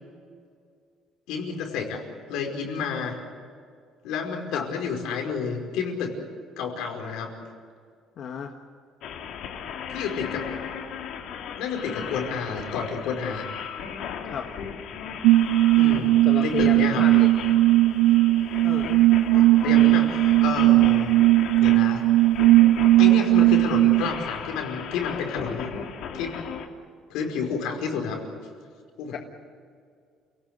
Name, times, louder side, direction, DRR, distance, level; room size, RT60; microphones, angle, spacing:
voice 1, 1.3-2.0 2.3-3.2 4.0-6.1 6.6-7.3 9.9-10.5 11.6-13.5 15.8-17.3 19.3-21.1 21.6-22.1 23.0-25.7 26.1-26.3 27.1-28.2 29.0-29.1, left 5 dB, 85° left, 3 dB, 5.1 m, -30 dB
voice 2, 8.2-8.5 14.2-14.5 16.2-17.3 18.6-19.1 29.1-29.2, left 7 dB, 55° left, 3 dB, 1.5 m, -32 dB
sound 1, 9.0-26.7, left 7 dB, 70° left, 2.4 m, -36 dB
sound 2, 15.2-24.1, right 16 dB, 90° right, 0.5 m, -18 dB
29.0 x 18.0 x 8.1 m, 2.2 s
cardioid pair, 140°, 0 cm